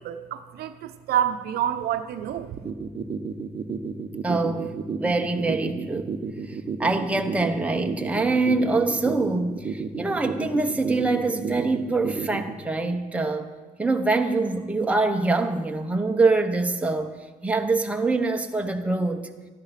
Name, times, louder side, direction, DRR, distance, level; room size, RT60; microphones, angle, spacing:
voice 1, 0.0-2.6, right 10 dB, 70° right, 0.8 m, -28 dB
sound 1, 2.6-12.6, right 6 dB, 35° right, 1.0 m, -31 dB
voice 2, 4.2-6.2 6.5-13.5 13.8-17.1 17.4-19.2, right 3 dB, 10° right, 1.0 m, -24 dB
13.0 x 10.5 x 5.8 m
cardioid pair, 105°, 17 cm